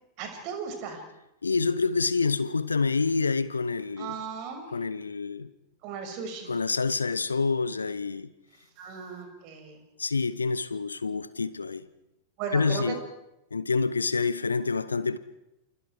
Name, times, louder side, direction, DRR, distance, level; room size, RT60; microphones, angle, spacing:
voice 1, 0.2-1.0 4.0-4.7 5.8-6.6 8.8-9.8 12.4-12.9, right 6 dB, 45° right, 6.4 m, -36 dB
voice 2, 1.4-4.1 4.7-5.5 6.5-8.3 10.0-11.9 12.5-13.0 13.5-15.2, left 4 dB, 75° left, 0.9 m, -27 dB
29.0 x 27.5 x 4.9 m
figure-of-eight pair, 90°, 0 cm